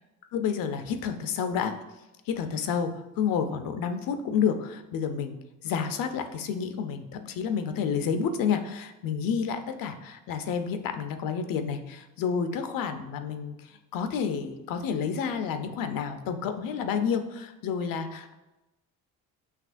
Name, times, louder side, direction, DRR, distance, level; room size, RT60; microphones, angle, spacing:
voice 1, 0.3-1.7 2.3-2.9 3.2-5.3 5.6-18.3, left 7 dB, 70° left, 8 dB, 0.6 m, -30 dB
5.8 x 2.8 x 2.5 m, 1.0 s
cardioid pair, 100°, 35 cm